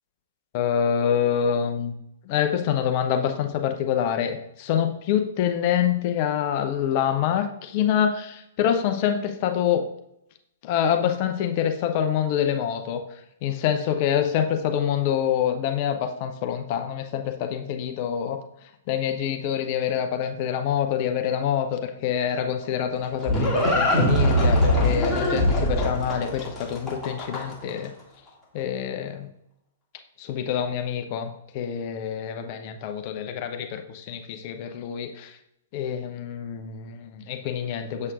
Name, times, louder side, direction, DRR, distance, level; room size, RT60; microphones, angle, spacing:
voice 1, 0.5-1.9 2.2-9.8 10.6-13.0 13.4-27.9 28.5-29.3 30.2-35.4 35.7-38.1, left 9 dB, 40° left, 6 dB, 0.7 m, -26 dB
Livestock farm animals working animals, 22.6-27.7, equal, 10° left, 2.2 m, -22 dB
7.4 x 6.5 x 2.5 m, 0.80 s
figure-of-eight pair, 110°, 0 cm